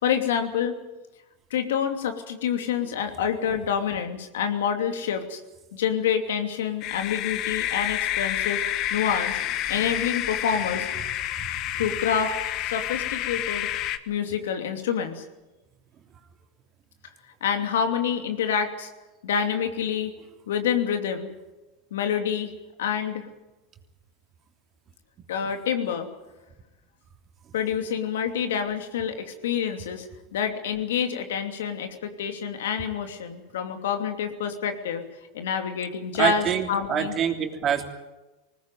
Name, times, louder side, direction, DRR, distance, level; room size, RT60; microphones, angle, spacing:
voice 1, 0.0-0.7 1.5-5.4 5.7-8.6 8.9-9.4 9.7-10.9 11.8-12.3 12.6-13.7 14.1-15.2 17.4-18.9 19.2-20.1 20.5-21.3 21.9-22.5 22.8-23.2 25.3-26.1 27.5-35.0 35.3-37.1, left 7 dB, 85° left, 6 dB, 2.7 m, -27 dB
sound 1, 6.8-14.0, left 12 dB, 50° left, 1.3 m, -29 dB
voice 2, 36.2-37.9, right 8 dB, 35° right, 4 dB, 3.2 m, -25 dB
20.0 x 19.0 x 9.2 m, 1.1 s
supercardioid pair, 115°, 0 cm